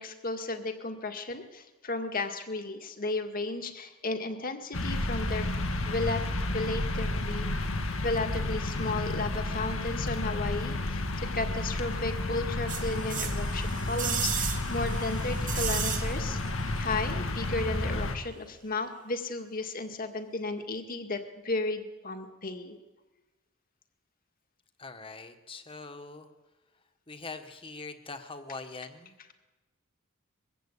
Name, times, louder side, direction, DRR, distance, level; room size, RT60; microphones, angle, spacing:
voice 1, 0.0-5.6 5.9-6.2 6.5-7.5 8.0-16.4 16.8-22.8, left 3 dB, 45° left, 6 dB, 2.0 m, -34 dB
sound 1, 4.7-18.2, left 2 dB, 70° left, 2.0 m, -31 dB
sound 2, 12.7-16.5 16.8-16.9, right 9 dB, 40° right, 1.9 m, -35 dB
voice 2, 24.8-26.3 27.1-29.2, left 3 dB, 25° left, 8 dB, 1.6 m, -43 dB
22.0 x 16.0 x 8.6 m, 1.2 s
head